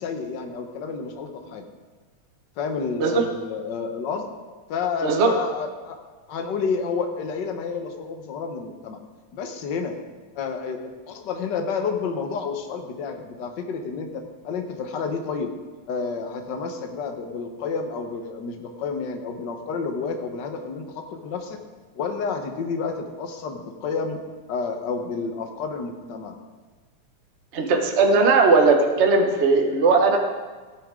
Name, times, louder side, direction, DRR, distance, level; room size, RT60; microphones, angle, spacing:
voice 1, 0.0-1.6 2.6-4.3 4.7-6.0 6.3-9.0 9.3-10.0 10.3-15.5 15.9-21.6 21.9-24.2 24.5-26.4, left 5 dB, 55° left, 5 dB, 1.2 m, -30 dB
voice 2, 27.5-30.2, right 4 dB, 50° right, 2 dB, 0.7 m, -18 dB
17.5 x 9.9 x 3.8 m, 1.4 s
omnidirectional pair, 3.5 m